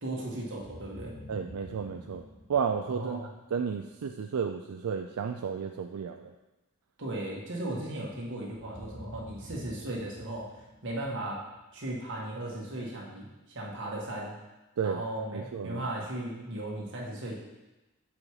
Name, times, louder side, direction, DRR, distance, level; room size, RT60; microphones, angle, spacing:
voice 1, 0.0-1.2 2.9-3.3 7.0-10.5 10.8-11.4 11.7-14.3 14.8-17.3, right 1 dB, 60° right, -3 dB, 1.7 m, -36 dB
sound 1, 0.5-3.5 8.5-11.7, left 1 dB, 35° left, 2.0 m, -49 dB
voice 2, 1.3-2.2 2.5-3.2 3.5-6.3 14.8-15.0 15.3-15.9, right 6 dB, 85° right, 5 dB, 0.4 m, -32 dB
7.1 x 5.1 x 4.8 m, 1.1 s
head